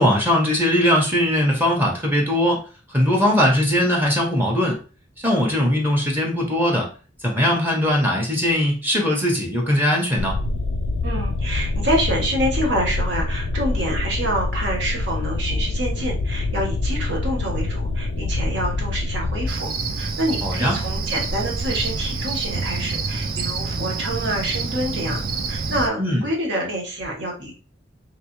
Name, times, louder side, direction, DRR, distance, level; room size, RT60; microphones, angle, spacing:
voice 1, 0.0-2.6 2.9-4.8 5.2-6.9 7.2-10.4 20.4-20.8 26.0-26.2, left 1 dB, 10° right, 0 dB, 0.8 m, -20 dB
sound 1, 10.2-19.5, left 2 dB, 80° left, 0.4 m, -25 dB
voice 2, 11.0-19.7 20.0-25.2 25.5-27.5, right 1 dB, 70° right, -1 dB, 1.3 m, -27 dB
Cricket, 19.5-25.9, right 3 dB, 50° right, 0.5 m, -27 dB
3.3 x 3.2 x 3.0 m, 0.36 s
head